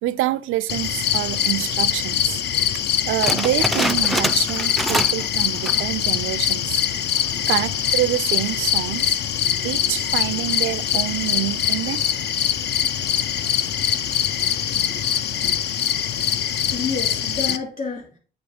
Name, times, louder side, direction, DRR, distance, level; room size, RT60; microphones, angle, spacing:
voice 1, 0.0-2.4 3.0-6.8 7.5-9.2 9.6-12.0, right 15 dB, 90° right, 0.4 m, -26 dB
sound 1, 0.7-17.6, left 9 dB, 60° left, 0.5 m, -23 dB
sound 2, 3.2-5.3 5.5-5.9 6.4-6.5 7.2-7.6, equal, ahead, 0.4 m, -25 dB
voice 2, 9.4-9.9 10.3-10.4 14.4-15.0 15.4-15.5 16.7-18.2, left 4 dB, 45° left, 2.5 m, -32 dB
8.1 x 3.0 x 5.0 m
cardioid pair, 90°, 20 cm